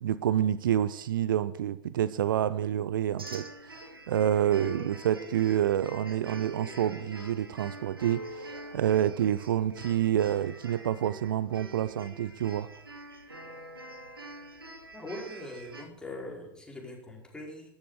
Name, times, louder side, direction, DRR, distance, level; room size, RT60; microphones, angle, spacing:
voice 1, 0.0-12.7, right 10 dB, 65° right, 0.6 m, -28 dB
sound 1, 3.2-15.8, right 2 dB, 85° right, 2.0 m, -45 dB
voice 2, 14.9-17.7, left 1 dB, 5° left, 5.0 m, -42 dB
14.0 x 12.0 x 6.7 m
figure-of-eight pair, 85°, 12 cm